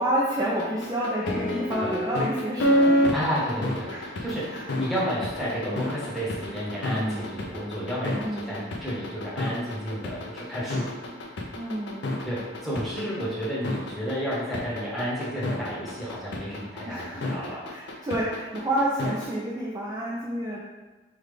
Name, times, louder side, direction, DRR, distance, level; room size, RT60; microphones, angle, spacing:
voice 1, 0.0-3.2 3.9-4.2 4.5-4.7 6.9-7.4 8.2-8.7 11.6-12.1 16.9-20.6, right 1 dB, 20° right, -6 dB, 0.4 m, -29 dB
sound 1, 0.6-19.3, left 1 dB, 65° left, 0.5 m, -28 dB
voice 2, 3.1-3.9 4.2-10.9 12.2-17.6, equal, ahead, -9 dB, 0.9 m, -31 dB
3.6 x 2.3 x 3.2 m, 1.2 s
head